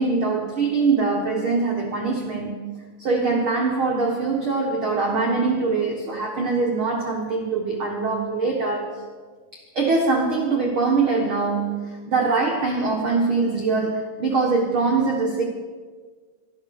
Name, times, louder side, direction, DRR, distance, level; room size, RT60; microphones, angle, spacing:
voice 1, 0.0-2.6 3.0-9.0 9.5-15.4, right 4 dB, 85° right, 0 dB, 1.1 m, -23 dB
12.5 x 12.5 x 7.1 m, 1.5 s
omnidirectional pair, 4.9 m